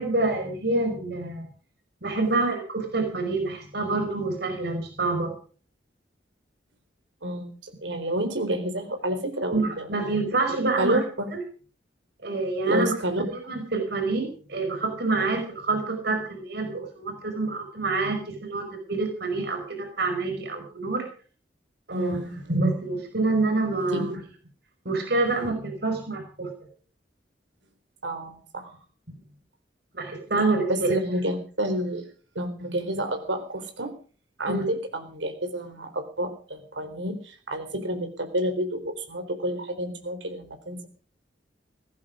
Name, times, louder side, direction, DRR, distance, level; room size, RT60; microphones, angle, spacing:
voice 1, 0.0-1.5 2.0-5.3 9.5-11.0 11.3-11.4 12.2-13.0 13.3-21.0 21.9-22.2 22.5-24.1 24.8-26.5 29.9-31.0 34.5-34.7, right 3 dB, 60° right, 5 dB, 5.2 m, -27 dB
voice 2, 7.2-9.9 10.8-11.3 12.7-13.2 15.2-15.4 21.9-22.4 23.9-24.2 28.0-28.8 30.7-32.1 32.4-33.9 34.4-40.9, right 1 dB, 85° right, 7 dB, 4.0 m, -29 dB
17.5 x 14.5 x 5.0 m, 0.41 s
head